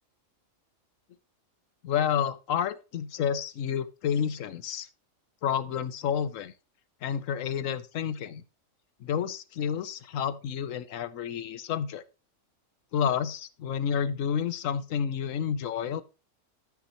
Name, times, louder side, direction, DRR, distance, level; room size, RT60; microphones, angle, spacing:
voice 1, 1.8-4.9 5.4-6.5 7.0-8.4 9.0-12.0 12.9-16.0, left 8 dB, 80° left, 1.1 m, -30 dB
14.0 x 5.9 x 2.9 m
omnidirectional pair, 1.3 m